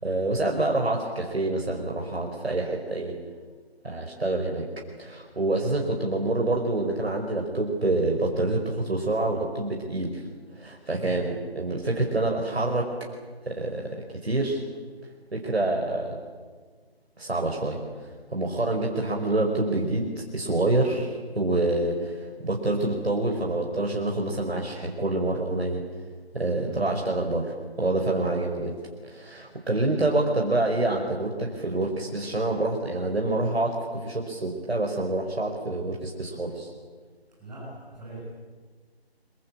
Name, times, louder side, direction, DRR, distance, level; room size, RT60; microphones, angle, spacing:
voice 1, 0.0-3.1 3.8-4.7 5.0-10.2 10.6-12.9 13.5-14.6 15.3-16.2 17.2-17.8 18.3-25.8 26.3-28.7 29.0-36.7, right 2 dB, 75° right, 0 dB, 5.2 m, -27 dB
voice 2, 37.4-38.2, right 3 dB, 5° right, -12 dB, 7.1 m, -41 dB
26.0 x 23.0 x 8.7 m, 1.5 s
figure-of-eight pair, 170°, 32 cm